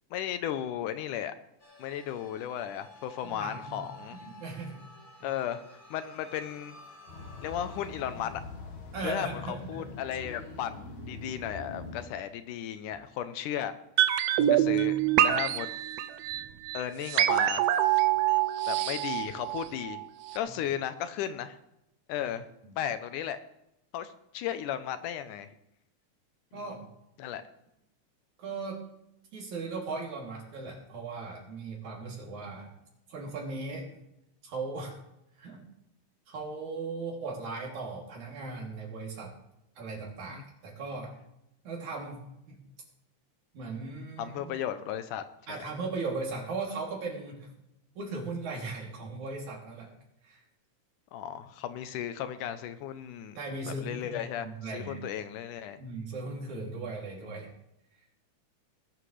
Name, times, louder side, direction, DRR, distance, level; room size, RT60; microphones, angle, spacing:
voice 1, 0.1-1.3 1.8-4.2 5.2-5.6 5.9-6.8 7.4-8.4 9.0-13.8 14.5-15.7 16.7-17.7 18.7-20.0 20.3-21.6 22.1-22.5 22.8-23.4 23.9-25.5 26.5-26.8 27.2-27.4 40.3-40.4 44.2-45.7 51.1-53.4 53.6-55.8, left 10 dB, 85° left, 11 dB, 2.3 m, -35 dB
sound 1, 1.6-7.9, left 2 dB, 15° left, 2.3 m, -52 dB
voice 2, 3.2-3.8 4.2-4.8 8.9-9.9 22.6-22.8 26.5-26.9 28.4-28.8 29.3-32.7 33.1-33.9 34.4-35.0 35.4-35.6 36.3-39.4 39.8-41.1 41.6-42.6 43.5-44.5 45.5-47.5 48.0-49.9 50.2-50.4 53.4-55.0 55.8-57.5, right 3 dB, 65° right, -2 dB, 4.4 m, -38 dB
sound 2, 7.1-12.1, left 3 dB, 65° left, 3.0 m, -43 dB
Sweeping Arp sequence, 14.0-20.0 20.3-20.4, right 12 dB, 80° right, 1.4 m, -26 dB
19.5 x 11.0 x 3.3 m, 0.83 s
omnidirectional pair, 3.7 m